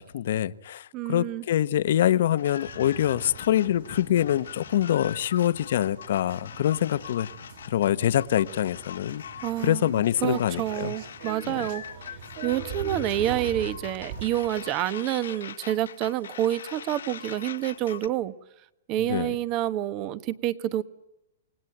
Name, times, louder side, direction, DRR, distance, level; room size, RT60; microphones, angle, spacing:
voice 1, 0.0-7.3 7.7-9.2 9.6-10.9 11.4-11.6 19.0-19.3, left 11 dB, 60° left, 1.0 m, -25 dB
voice 2, 0.9-1.4 9.4-11.8 12.4-18.3 18.9-20.8, right 13 dB, 30° right, 1.1 m, -28 dB
sound 1, 2.4-18.1, left 8 dB, 90° left, 1.5 m, -42 dB
sound 2, 2.7-14.7, right 6 dB, 55° right, 5.9 m, -43 dB
29.0 x 19.0 x 9.0 m
hypercardioid pair, 160°, 0 cm